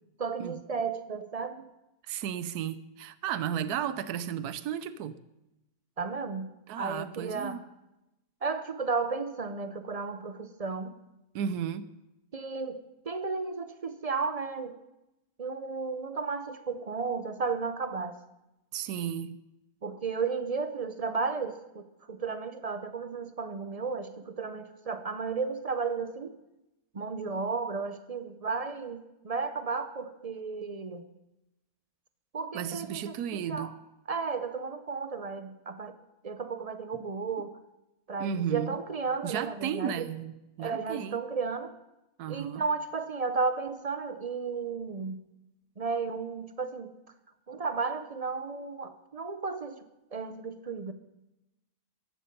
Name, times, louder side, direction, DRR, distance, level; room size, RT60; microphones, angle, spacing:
voice 1, 0.2-1.6 6.0-6.5 6.8-7.6 8.4-10.9 12.3-14.8 15.4-18.2 19.8-26.4 26.9-31.0 32.3-33.7 34.1-36.0 36.2-37.5 38.1-40.1 40.6-41.7 42.3-45.2 45.8-46.9 47.5-49.8 50.1-50.9, right 4 dB, 45° right, 10 dB, 0.5 m, -33 dB
voice 2, 2.0-5.2 6.7-7.6 11.3-11.9 18.7-19.4 32.5-33.8 36.9-37.0 38.2-38.8 39.2-41.2 42.2-42.6, right 9 dB, 90° right, 14 dB, 1.2 m, -34 dB
14.5 x 11.0 x 5.4 m, 0.94 s
omnidirectional pair, 1.6 m